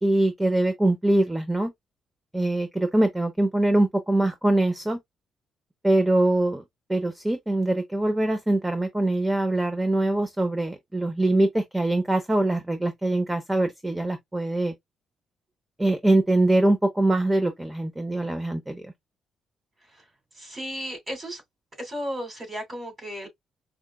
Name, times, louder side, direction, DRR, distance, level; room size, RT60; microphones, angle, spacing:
voice 1, 0.0-1.7 2.3-5.0 5.8-6.6 6.9-14.7 15.8-18.9, right 2 dB, 10° right, 0.6 m, -23 dB
voice 2, 20.4-21.4 21.8-23.3, equal, 30° right, 2.9 m, -34 dB
4.9 x 2.2 x 2.3 m
cardioid pair, 90°, 0 cm